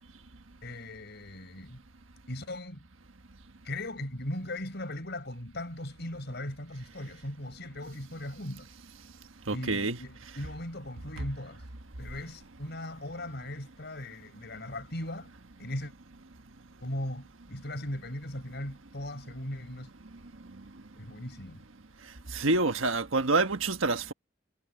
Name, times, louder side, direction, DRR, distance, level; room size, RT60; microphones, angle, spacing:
voice 1, 0.6-1.8 2.3-2.9 3.6-8.7 9.5-11.6 12.0-15.3 15.6-15.9 16.8-19.9 21.0-21.6, left 1 dB, 55° left, 5.5 m, -38 dB
voice 2, 9.5-10.0 22.4-24.1, right 3 dB, 80° right, 1.5 m, -27 dB
head